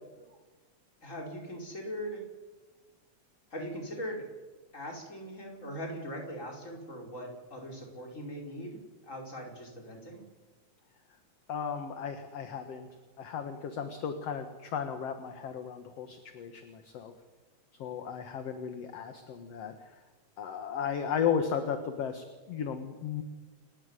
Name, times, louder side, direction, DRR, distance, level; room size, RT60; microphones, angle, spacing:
voice 1, 1.0-2.2 3.5-4.3 4.7-10.2, equal, 25° left, 0 dB, 5.3 m, -40 dB
voice 2, 11.5-12.9 13.2-17.1 17.8-19.9 20.4-23.2, left 7 dB, 60° left, 7 dB, 2.5 m, -35 dB
29.5 x 14.5 x 9.8 m, 1.3 s
omnidirectional pair, 3.4 m